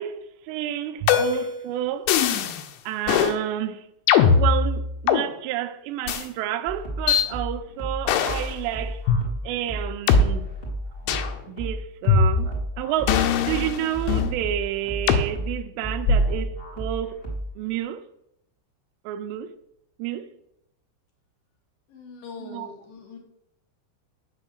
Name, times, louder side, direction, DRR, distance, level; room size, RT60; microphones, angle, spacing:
voice 1, 0.0-2.1 2.4-2.6 2.9-3.9 4.4-9.0 9.4-10.5 11.5-17.2 17.6-18.1 19.0-19.6 20.0-20.3 22.4-22.7, right 12 dB, 85° right, 2.5 m, -30 dB
sound 1, 1.1-1.5 2.1-2.6 3.1-3.3 4.1-5.2 6.1-6.2 7.1-7.3 8.1-8.5 9.1-9.2 10.1-10.2 11.1-11.3 12.1-12.6 13.1-14.3 15.1-15.3 16.1-16.4, left 6 dB, 85° left, 3.2 m, -20 dB
sound 2, 6.6-17.7, right 1 dB, 40° left, 0.7 m, -34 dB
voice 2, 21.9-23.2, left 5 dB, 60° left, 2.3 m, -41 dB
8.3 x 7.0 x 6.6 m
omnidirectional pair, 5.7 m